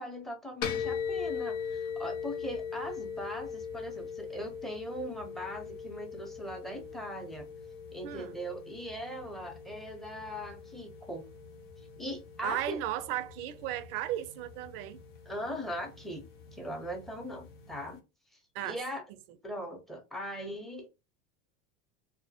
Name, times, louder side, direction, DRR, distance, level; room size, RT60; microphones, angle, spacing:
voice 1, 0.0-7.5 7.9-11.2 12.0-12.8 15.3-18.0 18.6-19.0 19.4-20.9, equal, ahead, 0.6 m, -40 dB
sound 1, 0.6-18.0, left 6 dB, 75° left, 0.7 m, -41 dB
voice 2, 8.0-8.4 12.4-15.0 18.5-18.8, right 13 dB, 75° right, 0.5 m, -35 dB
2.2 x 2.1 x 2.7 m
supercardioid pair, 105°, 29 cm